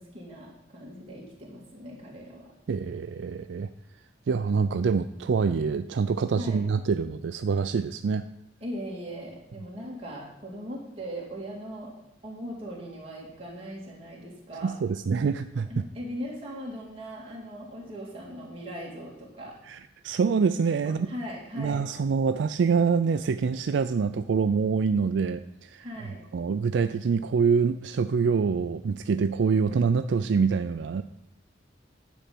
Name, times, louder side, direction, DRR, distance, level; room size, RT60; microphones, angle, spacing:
voice 1, 0.0-2.5 6.3-6.6 8.6-11.9 12.2-14.8 15.7-19.6 20.8-21.8 25.8-26.2, equal, 30° right, -4 dB, 2.7 m, -39 dB
voice 2, 2.7-3.7 4.3-8.2 14.6-15.7 19.7-21.1 21.6-25.9 26.3-31.0, right 5 dB, 70° right, 10 dB, 0.4 m, -25 dB
10.0 x 4.2 x 7.6 m, 0.82 s
head